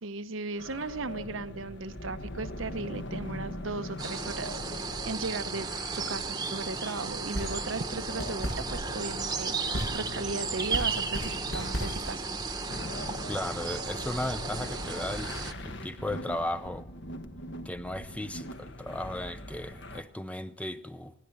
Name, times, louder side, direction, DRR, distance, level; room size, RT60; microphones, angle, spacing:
voice 1, 0.0-5.7 6.0-12.3, right 3 dB, 70° right, 0.9 m, -36 dB
sound 1, 0.6-20.0, left 1 dB, 60° left, 1.4 m, -41 dB
sound 2, 4.0-15.5, right 4 dB, 20° right, 1.1 m, -35 dB
sound 3, 7.2-12.2, equal, 80° left, 7.7 m, -37 dB
voice 2, 13.3-16.9 17.6-21.1, left 1 dB, 5° left, 0.6 m, -36 dB
21.0 x 17.0 x 7.7 m
head